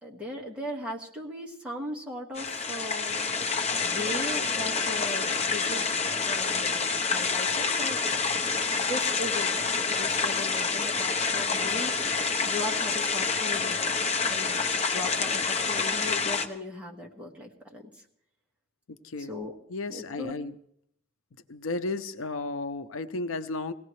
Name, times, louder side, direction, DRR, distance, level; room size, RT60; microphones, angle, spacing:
voice 1, 0.0-3.3 3.8-5.9 6.2-8.0 8.7-11.9 12.4-14.6 14.9-17.8 19.2-19.5 19.9-20.3, left 1 dB, 5° right, -2 dB, 1.6 m, -38 dB
sound 1, 2.4-16.5, left 4 dB, 35° left, 0.8 m, -28 dB
voice 2, 19.0-19.4 19.7-20.5 21.5-23.7, left 3 dB, 85° left, 9 dB, 0.6 m, -33 dB
21.0 x 17.5 x 3.2 m, 0.73 s
head